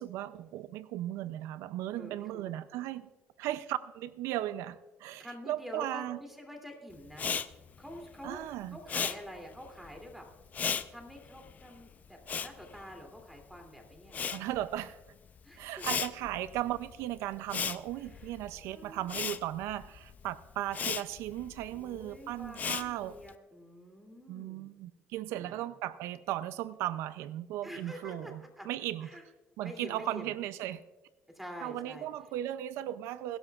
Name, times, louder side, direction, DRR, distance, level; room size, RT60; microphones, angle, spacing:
voice 1, 0.0-3.1 3.4-6.2 8.2-8.8 14.3-15.0 15.6-23.2 24.3-29.2 29.6-30.8 31.6-33.4, right 13 dB, 90° right, 15 dB, 0.4 m, -37 dB
voice 2, 2.0-2.5 5.2-7.3 7.8-8.4 8.7-10.3 10.9-14.3 15.4-15.7 18.0-18.3 18.7-19.0 21.7-24.7 25.3-25.7 27.6-28.7 29.0-29.2 29.6-30.3 31.3-32.1, equal, 5° right, 3 dB, 2.7 m, -47 dB
Respiratory sounds, 7.1-13.6 13.8-23.3, left 7 dB, 35° left, 0.6 m, -37 dB
22.0 x 12.0 x 2.4 m, 1.1 s
cardioid pair, 125°, 5 cm